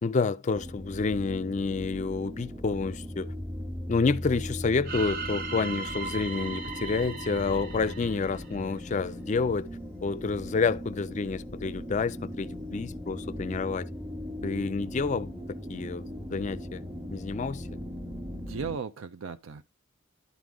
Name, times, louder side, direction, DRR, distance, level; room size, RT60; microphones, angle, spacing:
voice 1, 0.0-3.3 3.9-9.7 10.0-13.9 14.4-15.4 15.7-16.0 16.3-16.8 17.1-17.7, left 4 dB, 35° left, 0.4 m, -29 dB
sound 1, 0.5-18.8, equal, 5° right, 0.8 m, -39 dB
sound 2, 4.8-8.9, right 4 dB, 45° right, 0.9 m, -38 dB
voice 2, 18.3-19.6, right 5 dB, 90° right, 0.5 m, -36 dB
11.5 x 4.7 x 3.8 m
head